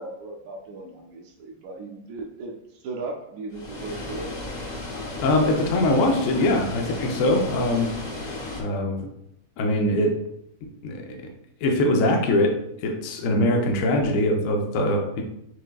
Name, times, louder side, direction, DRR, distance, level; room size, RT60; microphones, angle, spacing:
voice 1, 0.0-4.4 7.5-7.7, right 3 dB, 70° right, 1 dB, 0.9 m, -37 dB
Water, 3.5-8.6, left 2 dB, 35° left, 0.8 m, -34 dB
voice 2, 5.2-7.9 8.6-9.1 9.6-10.1 10.8-11.2 11.6-15.2, left 1 dB, 65° left, 2 dB, 1.0 m, -22 dB
6.5 x 3.5 x 2.3 m, 0.79 s
omnidirectional pair, 1.6 m